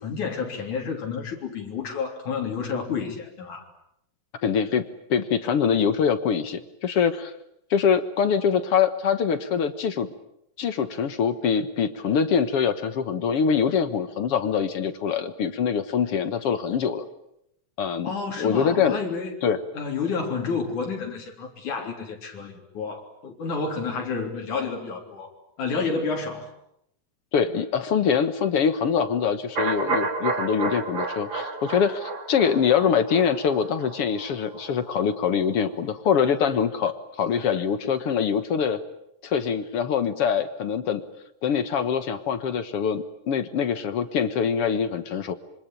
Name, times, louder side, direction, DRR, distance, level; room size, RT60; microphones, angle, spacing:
voice 1, 0.0-3.7 18.0-19.4 19.7-25.3 25.6-26.5, left 5 dB, 80° left, 1 dB, 5.0 m, -30 dB
voice 2, 4.4-4.8 5.1-7.3 7.7-10.1 10.6-17.1 17.8-18.1 18.4-19.0 19.4-19.6 27.3-38.8 39.2-41.0 41.4-45.3, left 7 dB, 55° left, 11 dB, 2.1 m, -24 dB
sound 1, 29.6-35.4 35.7-35.8, right 3 dB, 40° right, 4.0 m, -31 dB
26.5 x 25.0 x 9.0 m, 0.77 s
omnidirectional pair, 3.4 m